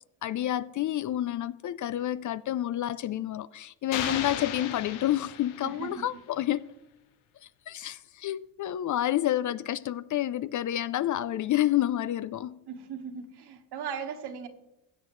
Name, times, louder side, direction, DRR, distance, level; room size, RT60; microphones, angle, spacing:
voice 1, 0.2-6.6 7.4-12.6, left 13 dB, 45° left, 0.4 m, -29 dB
sound 1, 3.9-6.1, left 10 dB, 85° left, 1.1 m, -36 dB
voice 2, 5.6-6.1 12.7-14.5, right 7 dB, 60° right, 1.5 m, -38 dB
16.0 x 8.4 x 3.2 m
supercardioid pair, 75°, 44 cm